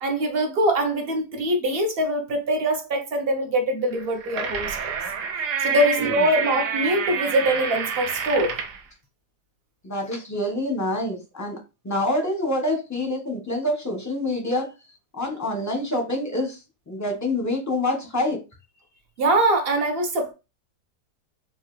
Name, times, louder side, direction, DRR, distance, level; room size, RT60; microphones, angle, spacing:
voice 1, 0.0-4.8 5.6-8.6 19.2-20.3, right 1 dB, 45° right, 0.8 m, -23 dB
sound 1, 4.0-8.8, right 6 dB, 80° right, 1.2 m, -28 dB
voice 2, 5.7-6.2 9.8-11.6 11.8-14.7 15.1-16.6 16.9-18.4, left 1 dB, 15° left, 0.7 m, -26 dB
4.7 x 2.3 x 3.1 m
omnidirectional pair, 1.7 m